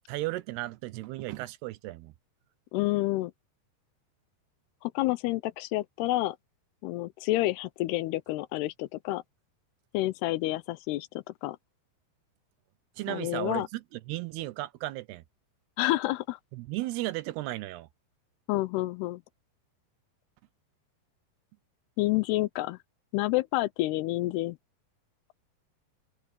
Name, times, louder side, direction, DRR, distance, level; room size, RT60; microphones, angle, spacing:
voice 1, 0.1-2.1 13.0-15.2 16.5-17.9, right 18 dB, 80° right, 2.8 m, -35 dB
voice 2, 2.7-3.3 4.8-6.4 6.8-9.2 9.9-11.6 13.1-13.7 15.8-16.4 18.5-19.2 22.0-22.8 23.1-24.6, left 18 dB, 80° left, 2.6 m, -29 dB
open air
omnidirectional pair, 4.7 m